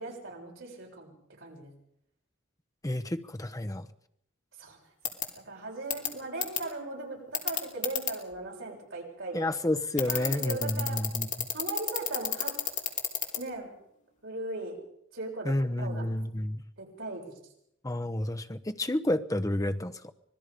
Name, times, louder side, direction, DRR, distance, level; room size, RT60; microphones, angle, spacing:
voice 1, 0.0-1.7 4.6-4.8 5.5-9.5 10.1-11.0 11.5-12.6 13.4-13.7 14.2-14.7 15.1-16.0 16.8-17.2, right 2 dB, 65° right, -2 dB, 7.2 m, -38 dB
voice 2, 2.8-3.9 9.3-11.5 15.4-16.6 17.8-20.1, left 1 dB, 15° left, 9 dB, 0.9 m, -30 dB
sound 1, 5.1-5.2 5.9-6.1 6.4-6.6 7.3-8.1 10.0-13.4, left 9 dB, 40° left, 3.2 m, -29 dB
25.5 x 19.5 x 5.3 m, 0.73 s
head